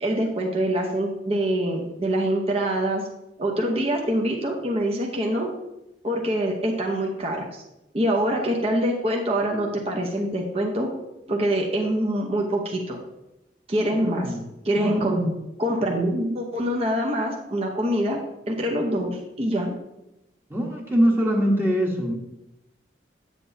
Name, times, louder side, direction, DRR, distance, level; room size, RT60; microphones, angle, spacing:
voice 1, 0.0-3.0 3.4-5.5 6.0-7.6 7.9-10.9 11.3-13.0 13.7-14.3 14.6-15.3 15.6-18.2 18.5-19.7, right 1 dB, 35° right, 0 dB, 0.9 m, -25 dB
voice 2, 13.9-14.4 14.7-15.0 20.5-22.2, equal, 10° right, -1 dB, 1.2 m, -23 dB
8.8 x 7.6 x 2.8 m, 0.90 s
head